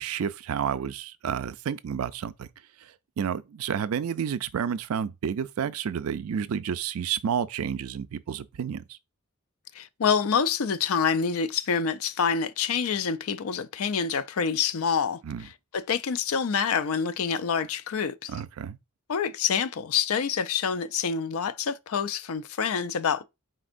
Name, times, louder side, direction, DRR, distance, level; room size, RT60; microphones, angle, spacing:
voice 1, 0.0-2.5 2.8-8.8 15.2-15.4 18.3-18.8, right 7 dB, 75° right, 0.4 m, -30 dB
voice 2, 9.7-18.3 19.1-23.2, left 6 dB, 70° left, 0.4 m, -27 dB
4.3 x 3.9 x 2.5 m
head